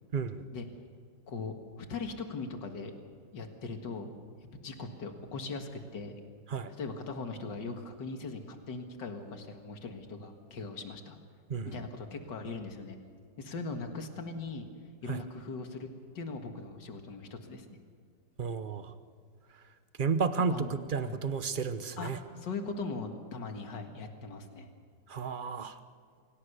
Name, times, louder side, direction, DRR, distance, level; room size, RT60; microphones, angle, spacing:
voice 1, 0.1-0.4 6.5-6.7 11.5-11.8 15.1-15.2 18.4-18.9 20.0-22.2 25.1-25.8, right 5 dB, 35° right, 10 dB, 1.0 m, -32 dB
voice 2, 1.3-2.9 3.3-4.2 4.5-6.2 6.7-11.2 11.7-13.0 13.4-14.7 15.0-15.9 16.1-17.7 20.5-21.2 22.0-24.7, left 3 dB, 80° left, 5 dB, 2.4 m, -40 dB
27.5 x 17.5 x 6.8 m, 2.1 s
omnidirectional pair, 1.9 m